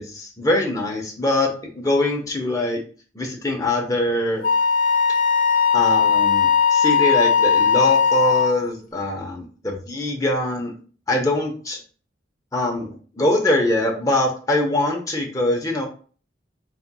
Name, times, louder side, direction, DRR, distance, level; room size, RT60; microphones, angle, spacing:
voice 1, 0.0-2.8 3.1-4.4 5.7-10.7 11.1-11.8 12.5-15.8, left 1 dB, 20° left, 1 dB, 0.9 m, -23 dB
Wind instrument woodwind instrument, 4.4-8.6, left 6 dB, 45° left, 0.4 m, -18 dB
4.3 x 4.1 x 2.2 m, 0.40 s
head